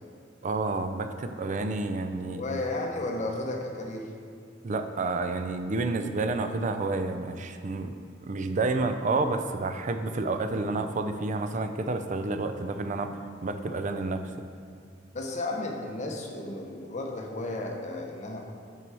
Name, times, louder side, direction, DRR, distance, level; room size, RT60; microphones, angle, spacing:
voice 1, 0.4-2.6 4.6-7.9 8.2-14.2, right 3 dB, 40° right, 7 dB, 0.4 m, -30 dB
voice 2, 2.3-4.1 15.1-18.4, left 2 dB, 40° left, 1 dB, 0.8 m, -33 dB
6.0 x 4.6 x 6.1 m, 2.3 s
head